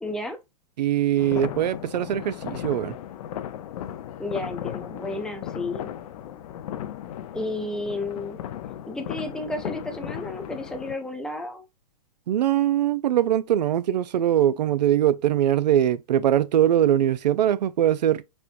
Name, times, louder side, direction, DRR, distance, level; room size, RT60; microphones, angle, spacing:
voice 1, 0.0-0.4 4.2-5.9 7.3-8.4 8.9-11.6, left 2 dB, 5° left, 0.5 m, -32 dB
voice 2, 0.8-3.0 12.3-18.2, right 11 dB, 80° right, 0.4 m, -22 dB
sound 1, 1.2-10.9, left 11 dB, 55° left, 0.5 m, -36 dB
4.3 x 2.1 x 2.5 m
hypercardioid pair, 120°, 21 cm